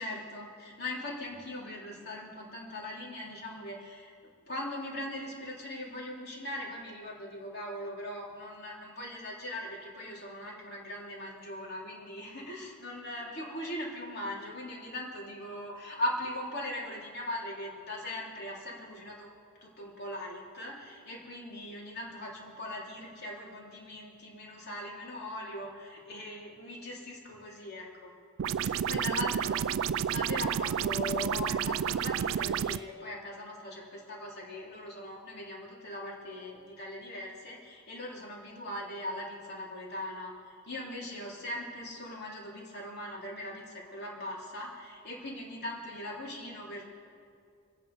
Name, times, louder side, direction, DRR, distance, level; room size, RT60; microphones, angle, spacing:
voice 1, 0.0-4.2 4.5-19.3 19.6-28.1 28.9-29.6 30.1-46.9, left 1 dB, 50° left, -3 dB, 3.5 m, -40 dB
sound 1, 28.4-32.8, right 8 dB, 70° right, 0.3 m, -30 dB
26.0 x 9.4 x 5.5 m, 2.3 s
head